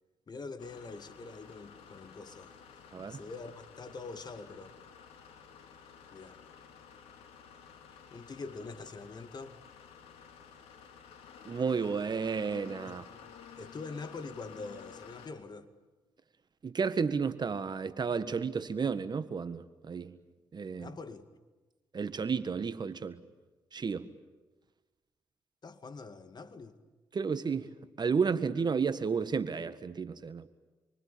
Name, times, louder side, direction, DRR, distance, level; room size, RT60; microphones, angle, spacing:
voice 1, 0.3-2.6 3.0-4.8 6.1-6.4 8.1-9.6 12.9-13.0 13.6-15.7 20.7-21.3 25.6-26.8, left 3 dB, 45° left, 2.3 m, -44 dB
sound 1, 0.6-15.3, left 7 dB, 80° left, 3.2 m, -53 dB
voice 2, 11.4-13.0 16.6-20.1 20.5-20.9 21.9-23.2 23.7-24.1 27.1-27.7 28.0-30.5, right 5 dB, 45° right, 1.7 m, -32 dB
28.0 x 25.0 x 8.6 m
hypercardioid pair, 45°, 10 cm